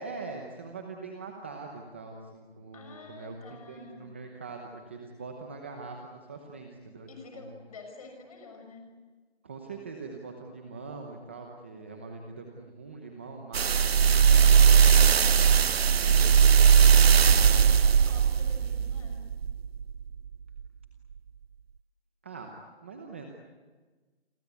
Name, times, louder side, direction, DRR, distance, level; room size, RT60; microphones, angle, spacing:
voice 1, 0.0-7.1 7.3-7.6 9.4-15.4 16.0-16.8 22.2-22.5 22.8-23.3, right 4 dB, 10° right, 2 dB, 0.9 m, -42 dB
voice 2, 2.7-4.1 7.1-9.0 17.4-19.3, left 3 dB, 35° left, 4 dB, 6.5 m, -48 dB
sound 1, 13.5-20.0 20.6-20.7, right 7 dB, 70° right, 0.8 m, -19 dB
29.0 x 23.5 x 8.3 m, 1.4 s
hypercardioid pair, 175°, 32 cm